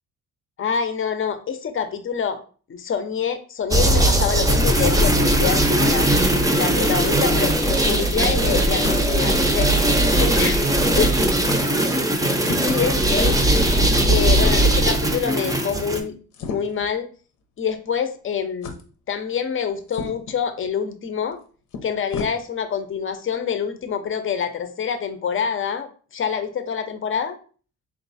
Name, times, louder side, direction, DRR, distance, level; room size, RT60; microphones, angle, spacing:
voice 1, 0.6-2.4 2.7-6.1 6.6-9.7 10.2-11.1 11.6-11.7 12.7-13.4 14.1-17.1 17.6-18.8 19.1-21.4 21.8-27.4, left 7 dB, 45° left, 9 dB, 0.7 m, -26 dB
sound 1, 3.7-16.0, right 1 dB, 10° right, 0.6 m, -19 dB
sound 2, 8.8-10.7 11.0-11.2 11.4-11.6 12.4-14.3 14.7-14.8 16.3-16.9 17.6-17.7 18.6-18.8 19.9-20.4 21.3-21.4 21.7-22.3, left 4 dB, 80° left, 0.8 m, -35 dB
3.8 x 2.3 x 4.0 m, 0.39 s
cardioid pair, 90°, 30 cm